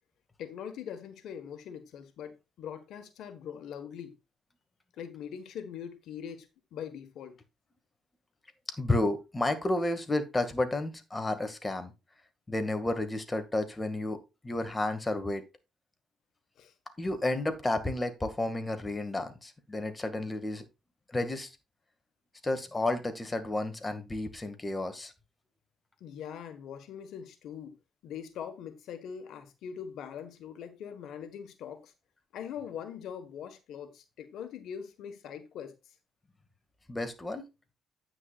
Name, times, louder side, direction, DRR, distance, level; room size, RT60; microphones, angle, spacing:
voice 1, 0.4-4.2 4.9-7.4 16.6-16.7 26.0-27.8 28.0-31.9 32.3-35.9, left 8 dB, 80° left, 1.5 m, -42 dB
voice 2, 8.8-11.9 12.5-14.2 14.4-15.4 17.0-20.6 21.1-21.5 22.4-25.1 36.9-37.4, left 2 dB, 20° left, 2.1 m, -31 dB
9.8 x 9.4 x 2.5 m
cardioid pair, 90°, 0 cm